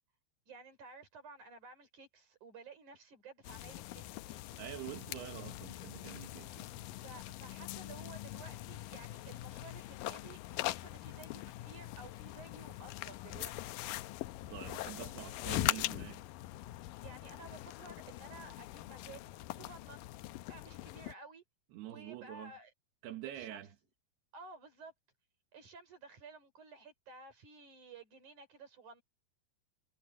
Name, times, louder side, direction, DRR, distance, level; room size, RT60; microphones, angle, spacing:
voice 1, 0.5-4.4 6.9-13.9 17.0-20.1 20.5-21.4 21.9-22.7 23.2-23.6 24.3-24.9 25.5-29.0, right 3 dB, 50° right, 6.7 m, -54 dB
sound 1, 3.4-21.1, left 16 dB, 85° left, 1.9 m, -42 dB
voice 2, 4.5-6.8 14.5-16.2 21.7-22.5 23.0-23.7, right 13 dB, 85° right, 3.4 m, -46 dB
omnidirectional pair, 4.6 m